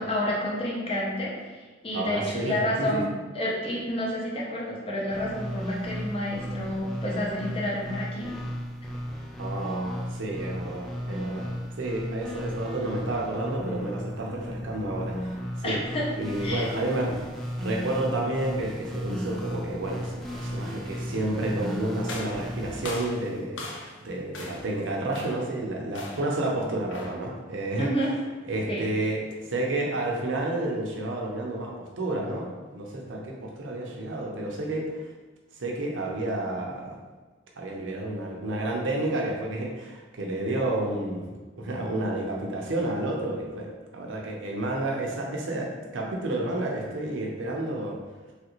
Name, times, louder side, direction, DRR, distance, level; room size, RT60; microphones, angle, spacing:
voice 1, 0.0-3.1 3.3-8.3 15.6-16.1 16.4-16.6 27.8-28.1 28.7-28.9, left 1 dB, 30° left, -4 dB, 0.7 m, -30 dB
voice 2, 1.9-3.0 9.4-11.5 11.8-15.8 16.2-17.2 17.6-27.9 28.5-29.2 29.5-35.1 35.6-37.0 37.6-43.7 43.9-48.0, right 1 dB, 70° right, -1 dB, 0.6 m, -30 dB
sound 1, 5.1-23.0, equal, ahead, 0.3 m, -35 dB
sound 2, 22.1-24.0 24.3-24.8 25.1-25.5 25.9-26.4 26.9-27.3, left 2 dB, 65° left, 0.5 m, -39 dB
3.2 x 2.4 x 3.0 m, 1.3 s
head